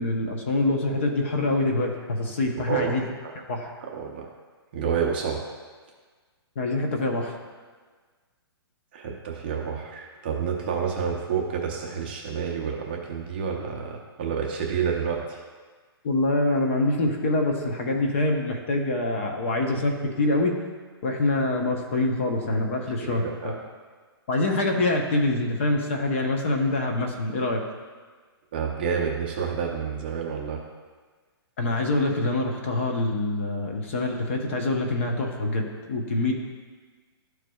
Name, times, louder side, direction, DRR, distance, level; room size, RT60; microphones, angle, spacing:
voice 1, 0.0-3.0 3.5-3.7 6.6-7.4 16.0-20.5 21.0-23.5 24.3-27.6 31.6-36.3, left 2 dB, 30° left, 2 dB, 0.8 m, -25 dB
voice 2, 3.8-4.3 4.7-5.4 8.9-15.4 23.0-23.5 28.5-30.6, right 6 dB, 25° right, -1 dB, 0.7 m, -29 dB
13.0 x 4.7 x 2.3 m, 1.5 s
hypercardioid pair, 180°, 14 cm